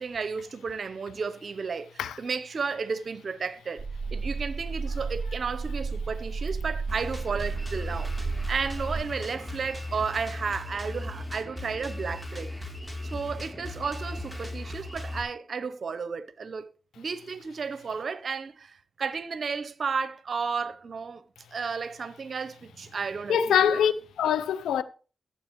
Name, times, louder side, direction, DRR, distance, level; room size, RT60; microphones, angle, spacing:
voice 1, 0.0-1.9 2.2-3.9 4.1-12.5 13.1-21.2 21.5-23.8, right 5 dB, 60° right, 0.8 m, -33 dB
sound 1, 3.8-9.0, right 4 dB, 40° right, 0.4 m, -33 dB
Drum kit, 6.9-15.2, left 1 dB, 10° left, 3.3 m, -37 dB
voice 2, 23.3-24.8, left 8 dB, 85° left, 0.6 m, -24 dB
14.0 x 8.0 x 3.1 m
supercardioid pair, 45°, 0 cm